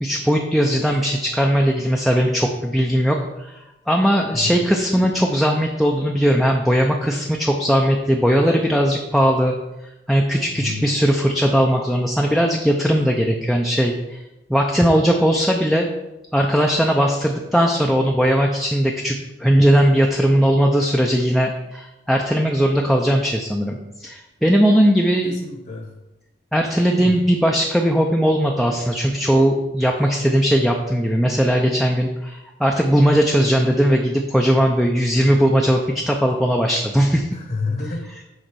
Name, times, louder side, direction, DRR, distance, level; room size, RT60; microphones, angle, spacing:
voice 1, 0.0-9.5 10.1-14.2 14.5-15.9 16.3-25.4 26.5-37.3, equal, ahead, 0 dB, 0.5 m, -18 dB
voice 2, 4.3-4.6 10.5-10.9 25.2-25.9 27.0-27.1 37.3-38.2, left 3 dB, 50° left, 3 dB, 1.0 m, -29 dB
6.5 x 4.2 x 6.2 m, 0.99 s
head